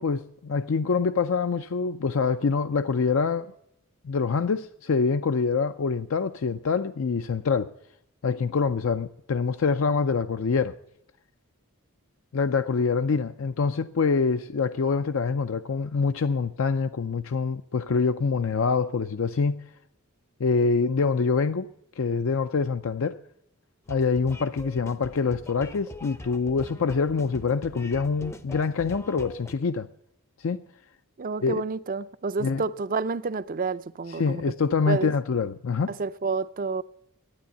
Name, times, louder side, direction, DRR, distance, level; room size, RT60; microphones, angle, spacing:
voice 1, 0.0-3.5 4.0-7.7 8.2-10.8 12.3-19.6 20.4-23.2 23.9-29.9 30.4-30.6 31.4-31.6 32.4-32.6 34.2-35.9, left 5 dB, 65° left, 0.5 m, -25 dB
sound 1, 23.9-29.5, left 1 dB, 10° left, 0.5 m, -43 dB
voice 2, 31.2-34.4 34.9-35.1 35.9-36.8, right 4 dB, 40° right, 0.5 m, -29 dB
12.0 x 9.6 x 8.1 m
head